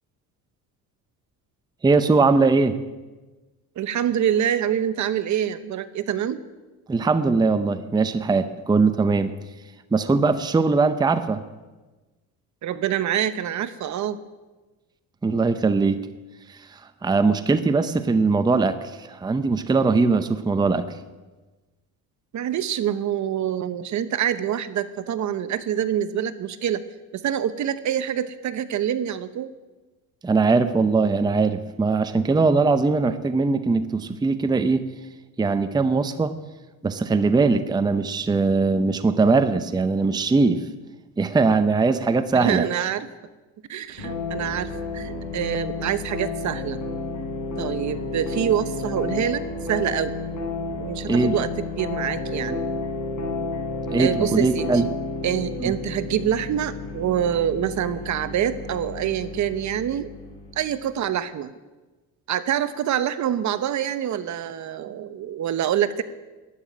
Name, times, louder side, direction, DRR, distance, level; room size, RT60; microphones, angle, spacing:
voice 1, 1.8-2.8 6.9-9.3 9.9-11.4 15.2-16.0 16.5-16.6 17.0-20.9 30.2-34.8 35.4-36.3 36.8-40.6 41.2-42.7 51.1-51.3 53.9-54.8 55.6-55.7, right 4 dB, 10° right, 11 dB, 0.6 m, -21 dB
voice 2, 3.8-6.4 12.6-14.2 22.3-26.8 27.1-29.5 42.3-43.1 43.7-46.8 47.6-49.4 49.7-50.1 50.8-52.6 54.0-54.7 55.2-60.1 60.6-61.5 62.3-66.0, right 10 dB, 50° right, 13 dB, 0.9 m, -26 dB
sound 1, 44.0-60.7, left 3 dB, 50° left, 5.2 m, -31 dB
11.5 x 9.2 x 9.9 m, 1.2 s
cardioid pair, 110°, 37 cm